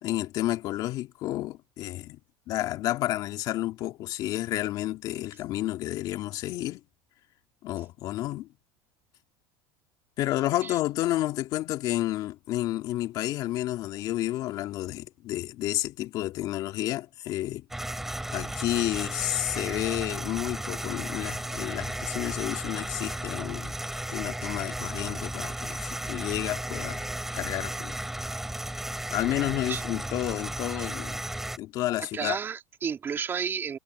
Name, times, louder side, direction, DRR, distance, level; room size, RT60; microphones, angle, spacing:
voice 1, 0.0-2.2 2.5-6.8 7.6-8.5 10.2-17.7 18.3-23.7 24.1-27.1 27.3-27.9 29.1-31.2 31.6-32.4, left 15 dB, 50° left, 2.4 m, -30 dB
sound 1, 17.7-31.6, right 1 dB, 5° right, 4.4 m, -34 dB
voice 2, 32.0-33.8, right 7 dB, 25° right, 3.4 m, -32 dB
supercardioid pair, 130°, 8 cm